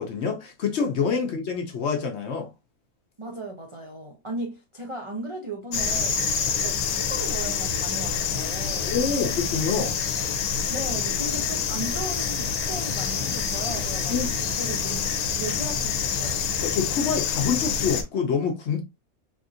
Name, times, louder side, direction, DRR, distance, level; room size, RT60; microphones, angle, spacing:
voice 1, 0.0-2.5 8.8-10.0 14.1-14.3 16.6-18.8, left 5 dB, 60° left, 0.8 m, -26 dB
voice 2, 3.2-6.2 6.6-9.0 10.7-15.1 15.4-16.5, right 2 dB, 50° right, 0.3 m, -36 dB
sound 1, 5.7-18.0, left 6 dB, 85° left, 1.1 m, -27 dB
3.5 x 2.5 x 2.5 m
omnidirectional pair, 1.5 m